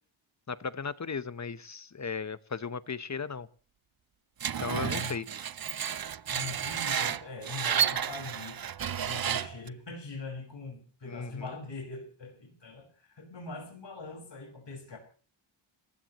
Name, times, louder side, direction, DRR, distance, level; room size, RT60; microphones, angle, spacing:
voice 1, 0.5-3.5 4.6-5.3 11.1-11.6, left 5 dB, 35° left, 15 dB, 1.0 m, -36 dB
Screech, 4.4-9.7, right 8 dB, 45° right, 0.7 m, -31 dB
voice 2, 4.7-5.2 6.3-8.6 9.1-15.0, left 3 dB, 55° left, 2 dB, 5.3 m, -42 dB
29.5 x 16.0 x 3.0 m, 0.40 s
wide cardioid pair, 95°, 50 cm